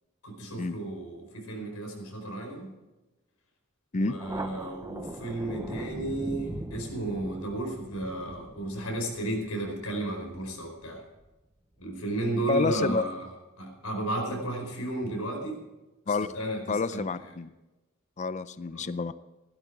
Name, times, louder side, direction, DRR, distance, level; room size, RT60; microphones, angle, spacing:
voice 1, 0.2-2.7 3.9-11.0 11.8-13.2 13.6-15.6 16.1-17.0 18.7-18.9, right 1 dB, 90° left, 2 dB, 4.8 m, -33 dB
Thunder, 4.2-11.3, right 1 dB, 15° right, 0.6 m, -41 dB
voice 2, 12.5-13.0 16.1-16.3 16.7-17.5 18.2-19.1, left 4 dB, 35° left, 14 dB, 0.5 m, -28 dB
16.0 x 12.0 x 4.9 m, 1.1 s
head